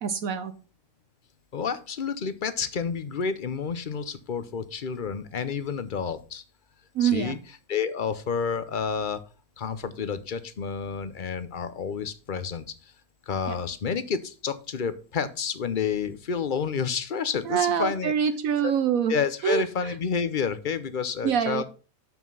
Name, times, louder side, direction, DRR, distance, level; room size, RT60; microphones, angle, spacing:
voice 1, 0.0-0.5 6.9-7.4 17.5-19.1 19.4-19.7 21.2-21.6, right 8 dB, 75° right, 9 dB, 1.2 m, -25 dB
voice 2, 1.5-6.4 7.0-7.4 7.7-9.2 9.6-12.6 13.3-18.1 18.6-18.7 19.1-21.6, left 6 dB, 45° left, 13 dB, 0.7 m, -29 dB
7.2 x 5.9 x 5.4 m, 0.36 s
omnidirectional pair, 1.5 m